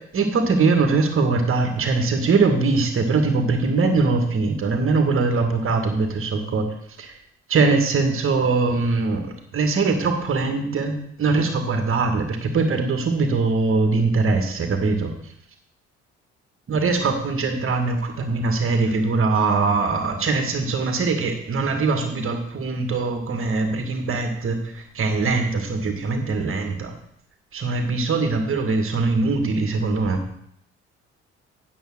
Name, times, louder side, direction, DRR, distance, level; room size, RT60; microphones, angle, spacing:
voice 1, 0.1-6.7 7.0-7.2 7.5-15.1 16.7-26.9 27.5-30.2, right 3 dB, 40° right, 5 dB, 2.1 m, -22 dB
9.4 x 7.0 x 6.4 m, 0.69 s
figure-of-eight pair, 50°, 34 cm